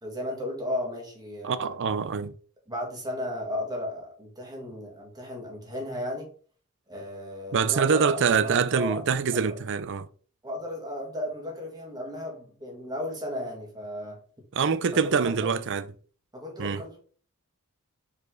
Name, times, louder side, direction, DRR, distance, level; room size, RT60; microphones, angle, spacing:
voice 1, 0.0-1.8 2.7-6.3 6.9-9.1 9.3-9.6 10.4-14.2 14.9-15.6 16.3-17.0, left 1 dB, 20° right, 2.1 m, -35 dB
voice 2, 1.4-2.3 7.5-10.1 14.6-15.8 16.6-16.8, right 6 dB, 55° right, 0.5 m, -25 dB
5.0 x 4.9 x 3.8 m
head